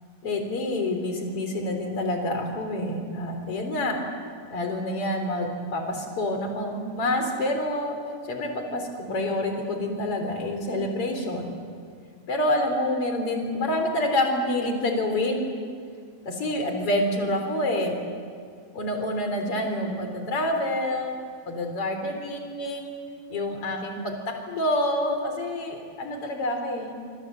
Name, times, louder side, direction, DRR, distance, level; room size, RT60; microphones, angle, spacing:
voice 1, 0.2-4.0 4.5-8.0 8.3-11.5 12.3-15.5 16.3-18.0 18.7-21.2 21.5-22.9 23.3-24.2 24.5-26.9, left 1 dB, 35° left, 4 dB, 4.0 m, -27 dB
28.0 x 25.0 x 7.7 m, 2.2 s
omnidirectional pair, 5.2 m